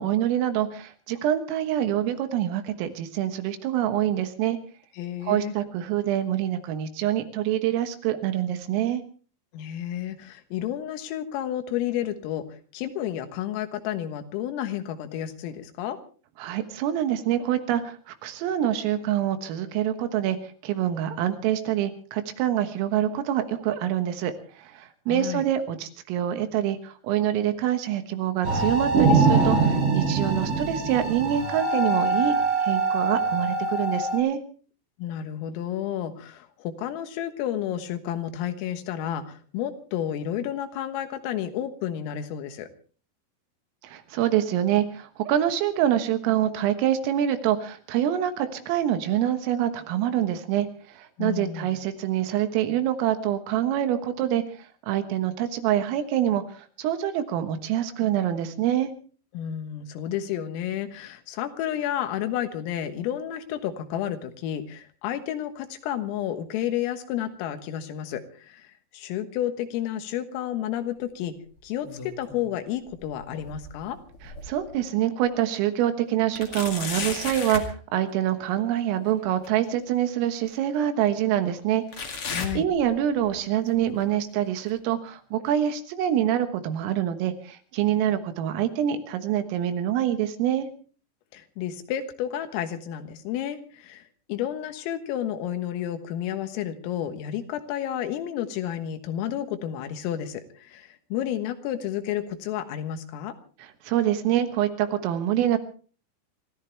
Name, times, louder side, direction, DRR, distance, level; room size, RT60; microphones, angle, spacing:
voice 1, 0.0-4.6 5.2-9.0 16.4-20.4 20.6-24.3 24.6-34.4 43.8-54.4 54.9-56.4 56.8-58.9 74.4-81.8 82.6-90.7 103.8-105.6, right 11 dB, 80° right, 9 dB, 4.0 m, -25 dB
voice 2, 5.0-5.5 9.5-12.5 12.7-16.0 25.1-25.4 35.0-42.7 51.2-51.8 59.3-68.7 68.9-71.4 71.6-74.0 82.3-82.7 91.3-103.4, left 11 dB, 85° left, 9 dB, 4.0 m, -31 dB
sound 1, 28.4-34.2, right 3 dB, 65° right, 7.3 m, -23 dB
sound 2, 71.6-72.5 72.9-74.8 75.3-75.4 76.3-77.7 79.4-79.5 80.5-80.6 81.9-83.3 83.7-84.0 84.7-84.8 85.7-85.8, left 4 dB, 50° left, 1.7 m, -35 dB
26.5 x 14.0 x 3.4 m, 0.40 s
omnidirectional pair, 5.9 m